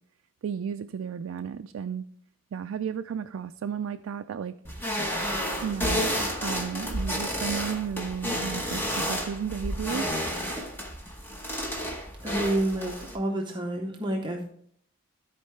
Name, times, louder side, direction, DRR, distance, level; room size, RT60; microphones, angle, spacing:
voice 1, 0.4-2.0 2.5-4.5 5.6-6.1 6.4-10.1, right 7 dB, 80° right, 8 dB, 0.3 m, -33 dB
sound 1, 4.6-13.1, equal, 10° left, 1.0 m, -31 dB
voice 2, 12.2-14.5, right 1 dB, 25° right, 1 dB, 0.6 m, -29 dB
13.5 x 4.6 x 3.2 m, 0.64 s
head